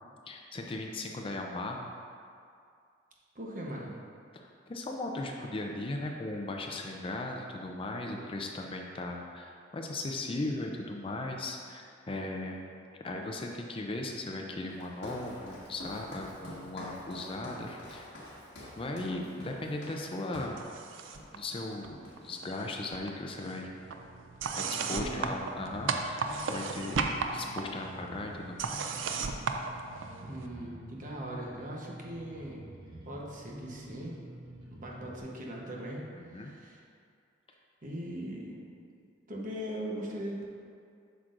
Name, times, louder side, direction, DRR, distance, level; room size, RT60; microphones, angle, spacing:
voice 1, 0.3-1.9 4.3-12.7 13.0-18.1 18.8-20.8 21.3-23.7 24.5-28.9 36.1-36.5, left 2 dB, 30° left, 1 dB, 0.5 m, -38 dB
voice 2, 3.3-4.0 24.6-25.3 30.2-32.7 33.0-34.2 34.7-36.8 37.8-38.6 39.3-40.4, equal, 45° right, -2 dB, 1.0 m, -40 dB
Walk footsteps, 14.7-20.7 21.1-21.4 21.7-22.5, left 1 dB, 65° left, 1.6 m, -46 dB
sound 1, 20.6-21.4 21.6-22.7 22.9-30.5, right 4 dB, 90° right, 0.4 m, -35 dB
Bass guitar, 25.6-35.2, right 1 dB, 25° right, 1.1 m, -49 dB
8.0 x 6.1 x 2.5 m, 2.3 s
head